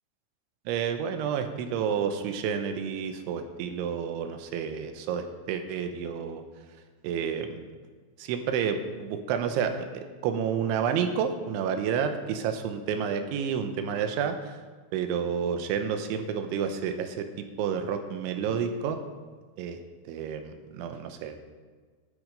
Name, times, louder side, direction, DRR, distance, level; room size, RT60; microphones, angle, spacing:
voice 1, 0.7-6.4 7.0-7.6 8.2-14.6 14.9-19.0 19.6-19.8 20.1-21.4, right 7 dB, 80° right, 7 dB, 3.0 m, -30 dB
12.5 x 8.6 x 5.1 m, 1.5 s
omnidirectional pair, 5.7 m